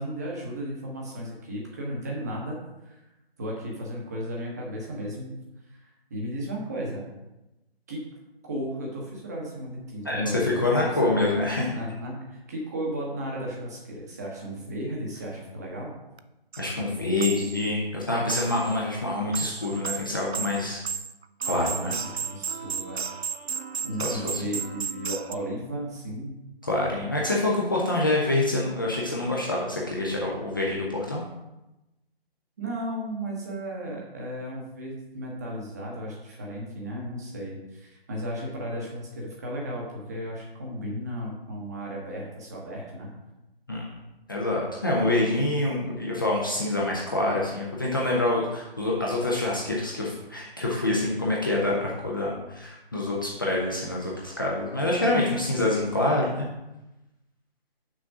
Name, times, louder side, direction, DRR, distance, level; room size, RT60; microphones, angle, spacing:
voice 1, 0.0-2.6 2.8-3.0 3.4-5.3 5.7-7.0 7.9-8.0 8.4-10.6 11.0-11.3 11.7-15.9 21.5-23.1 23.8-26.3 32.6-43.1, equal, 15° right, -2 dB, 0.9 m, -35 dB
voice 2, 10.0-11.7 16.6-20.8 21.5-21.9 24.0-24.4 26.6-31.2 43.7-43.8 44.3-56.5, left 2 dB, 20° left, -3 dB, 0.6 m, -26 dB
sound 1, 16.2-16.3 16.5-16.6 17.2-17.7 18.3-18.8 19.1-25.4, right 7 dB, 85° right, 0.5 m, -33 dB
6.2 x 4.2 x 6.0 m, 0.98 s
figure-of-eight pair, 155°, 30 cm